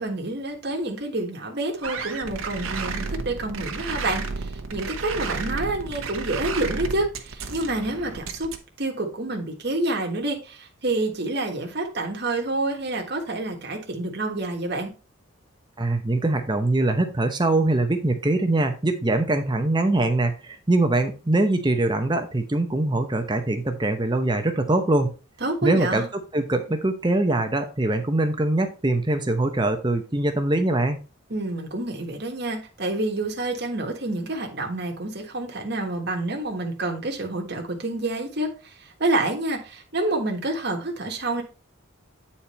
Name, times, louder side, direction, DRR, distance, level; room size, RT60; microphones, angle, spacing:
voice 1, 0.0-8.5 8.8-14.9 25.4-26.1 31.3-41.4, right 2 dB, 50° right, 2 dB, 1.5 m, -28 dB
sound 1, 1.8-8.6, right 4 dB, 75° right, 1.1 m, -32 dB
voice 2, 15.8-25.1 25.6-31.0, right 2 dB, 20° right, 6 dB, 0.8 m, -23 dB
8.6 x 4.3 x 4.2 m, 0.33 s
head